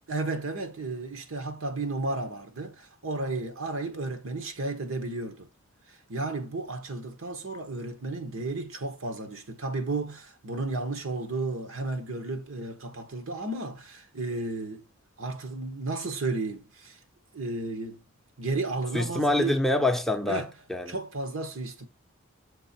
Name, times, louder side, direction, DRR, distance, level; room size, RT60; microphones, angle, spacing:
voice 1, 0.1-5.5 5.9-14.8 15.2-17.0 17.3-18.0 18.4-19.5 20.3-20.5 20.9-21.9, right 2 dB, 75° right, 1.2 m, -33 dB
voice 2, 18.9-21.0, left 2 dB, ahead, 0.6 m, -26 dB
6.7 x 3.7 x 4.3 m
head